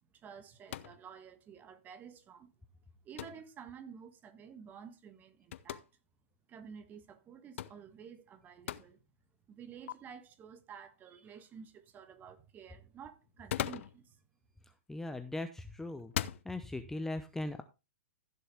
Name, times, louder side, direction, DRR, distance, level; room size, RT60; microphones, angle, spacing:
voice 1, 0.2-2.5 3.0-5.9 6.5-9.0 9.5-14.2, right 7 dB, 25° right, 1.5 m, -51 dB
sound 1, 0.7-1.0 3.2-3.5 5.5-5.9 7.6-7.8 8.7-8.9 9.9-10.0 13.3-14.0 15.1-15.4 16.0-16.4, left 11 dB, 65° left, 0.7 m, -38 dB
voice 2, 14.9-16.1 16.4-17.6, left 2 dB, 5° left, 0.7 m, -39 dB
15.0 x 6.7 x 3.5 m
hypercardioid pair, 125°, 7 cm